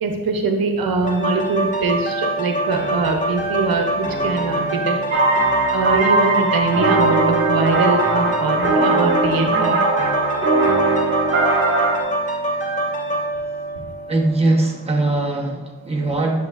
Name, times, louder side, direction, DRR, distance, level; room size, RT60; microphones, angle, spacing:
voice 1, 0.0-5.2 5.7-9.9 13.7-13.8, right 3 dB, 75° right, 3 dB, 1.0 m, -22 dB
sound 1, 1.0-14.7 15.2-15.3, right 1 dB, 20° left, 1.6 m, -24 dB
sound 2, 5.1-12.0, right 3 dB, 35° right, 2.1 m, -19 dB
voice 2, 14.1-16.5, right 2 dB, 15° right, -2 dB, 1.3 m, -20 dB
10.0 x 7.0 x 2.7 m, 1.2 s
wide cardioid pair, 105°, 36 cm